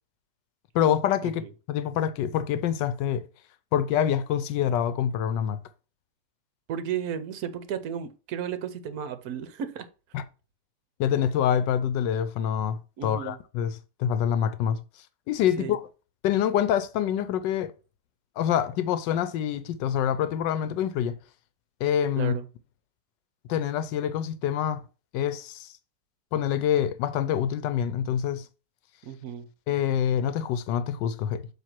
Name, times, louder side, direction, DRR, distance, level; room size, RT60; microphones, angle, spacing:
voice 1, 0.7-3.3 3.7-5.6 10.1-10.2 11.0-14.8 15.3-15.8 16.2-17.7 18.4-21.2 21.8-22.3 23.5-24.8 25.1-25.7 26.3-28.5 29.7-31.5, left 9 dB, 85° left, 1.3 m, -26 dB
voice 2, 6.7-9.9 13.0-13.4 15.6-15.8 22.2-22.5 29.0-29.5, right 8 dB, 65° right, 1.2 m, -34 dB
7.3 x 3.1 x 5.9 m
omnidirectional pair, 1.9 m